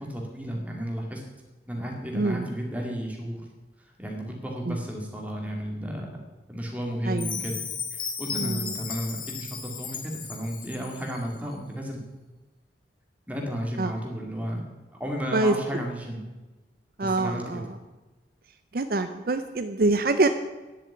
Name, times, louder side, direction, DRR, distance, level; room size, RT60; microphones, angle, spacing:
voice 1, 0.1-1.2 1.7-3.5 3.8-6.1 6.5-7.6 7.9-12.0 13.3-14.6 15.0-16.2 17.0-17.6, equal, 10° right, 0 dB, 2.3 m, -33 dB
voice 2, 2.1-2.5 4.7-4.8 7.1-7.3 8.3-8.7 13.8-13.9 15.3-15.5 17.0-17.6 18.7-20.3, right 2 dB, 50° right, 9 dB, 0.6 m, -25 dB
Chime, 7.2-11.3, left 6 dB, 25° left, 1.4 m, -35 dB
10.0 x 7.7 x 9.2 m, 1.2 s
head